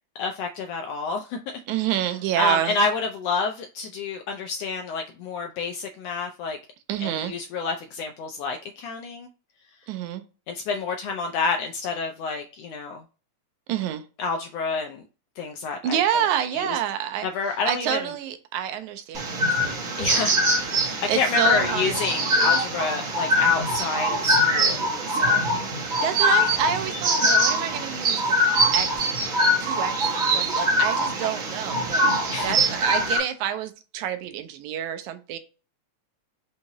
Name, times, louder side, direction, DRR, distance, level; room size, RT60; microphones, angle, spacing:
voice 1, 0.2-1.6 2.4-6.6 7.0-9.3 10.5-13.0 14.2-15.0 15.4-16.2 16.5-16.8 17.2-18.1 20.0-24.8 25.1-25.5 32.3-32.6, left 4 dB, 80° left, 1.4 m, -29 dB
voice 2, 1.7-2.7 6.9-7.3 9.9-10.2 13.7-14.0 15.8-17.3 17.7-20.2 20.7-22.0 22.4-22.6 25.5-29.2 29.6-29.9 30.3-35.4, right 10 dB, 85° right, 2.0 m, -28 dB
sound 1, 19.1-33.2, equal, 65° right, 0.8 m, -23 dB
5.4 x 2.8 x 2.9 m
omnidirectional pair, 3.3 m